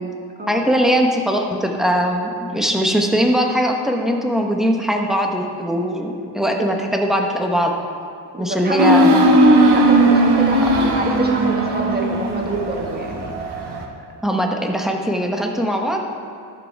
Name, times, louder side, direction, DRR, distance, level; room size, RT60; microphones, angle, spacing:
voice 1, 0.5-7.7 8.4-9.2 14.2-16.0, equal, ahead, 1 dB, 1.0 m, -20 dB
voice 2, 6.2-6.7 8.3-13.8, right 1 dB, 20° right, 0 dB, 1.6 m, -27 dB
sound 1, 8.8-13.8, right 1 dB, 60° right, 1.4 m, -16 dB
15.5 x 6.8 x 4.7 m, 2.6 s
wide cardioid pair, 145°, 44 cm